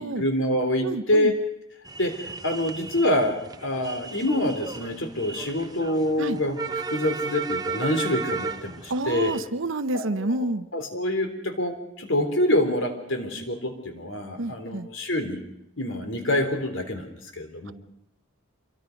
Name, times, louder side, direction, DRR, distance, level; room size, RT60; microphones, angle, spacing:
voice 1, 0.0-1.3 2.0-6.6 6.9-9.3 9.9-10.4 10.7-15.4 15.8-17.7, left 1 dB, 60° left, 6 dB, 3.7 m, -26 dB
voice 2, 0.8-1.3 6.2-6.4 8.9-10.7 14.4-14.9, right 2 dB, 65° right, 12 dB, 0.9 m, -28 dB
sound 1, 1.9-9.4, right 4 dB, 20° right, 0.8 m, -34 dB
27.0 x 23.0 x 5.3 m, 0.79 s
head